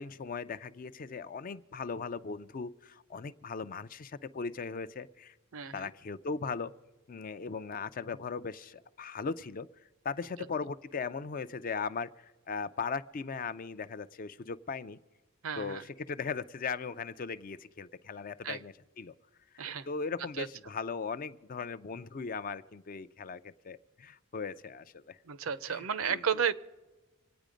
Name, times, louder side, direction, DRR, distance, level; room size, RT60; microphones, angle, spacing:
voice 1, 0.0-5.3 5.7-6.7 7.1-9.7 10.0-15.0 15.6-19.1 19.9-25.2 25.7-25.8 26.1-26.2, left 5 dB, 40° left, 14 dB, 0.4 m, -38 dB
voice 2, 5.5-5.9 15.4-15.8 18.4-18.6 19.6-19.9 20.4-20.5 25.3-26.5, right 7 dB, 70° right, 16 dB, 0.6 m, -32 dB
26.0 x 9.1 x 5.1 m, 1.2 s
head